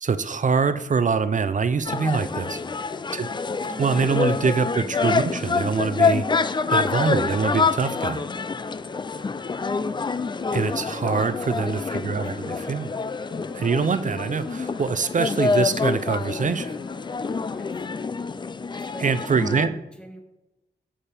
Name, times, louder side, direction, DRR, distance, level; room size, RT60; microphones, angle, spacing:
voice 1, 0.0-2.6 3.1-3.3 3.7-6.2 6.7-8.2 10.5-12.8 13.5-16.8 18.7-19.7, right 5 dB, 45° right, 13 dB, 0.5 m, -24 dB
sound 1, 1.7-18.1, left 6 dB, 90° left, 0.6 m, -49 dB
sound 2, 1.9-19.7, left 4 dB, 25° left, 0.3 m, -27 dB
voice 2, 2.3-2.9 4.2-4.7 11.4-11.9 12.2-12.3 12.6-12.9 17.5-17.8 18.9-20.2, equal, 5° left, 3 dB, 1.4 m, -45 dB
7.4 x 6.5 x 3.4 m, 0.95 s
cardioid pair, 55°, 18 cm